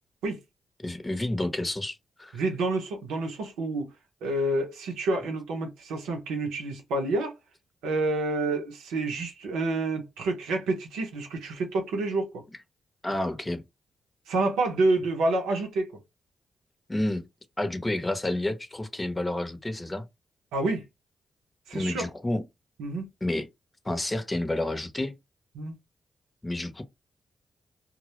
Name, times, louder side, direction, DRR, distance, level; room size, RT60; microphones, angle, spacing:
voice 1, 0.8-2.4 13.0-13.6 16.9-17.3 17.6-20.1 21.7-22.5 23.2-23.5 23.8-25.1 26.4-26.8, left 1 dB, 25° left, 0.7 m, -30 dB
voice 2, 2.3-3.9 4.2-7.3 7.8-12.4 14.3-15.9 20.5-20.8 21.7-22.1 22.8-23.1 25.5-25.7, right 2 dB, 90° right, 0.6 m, -28 dB
2.1 x 2.0 x 2.9 m
supercardioid pair, 40°, 0 cm